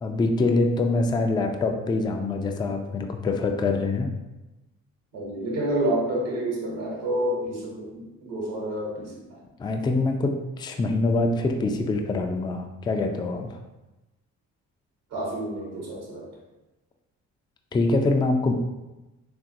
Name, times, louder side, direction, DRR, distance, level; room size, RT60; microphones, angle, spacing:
voice 1, 0.0-4.1 9.6-13.5 17.7-18.5, left 3 dB, 10° left, 4 dB, 0.3 m, -24 dB
voice 2, 5.1-9.2 15.1-16.3, right 1 dB, 75° right, -4 dB, 1.1 m, -29 dB
3.7 x 2.6 x 2.6 m, 1.0 s
hypercardioid pair, 40°, 40 cm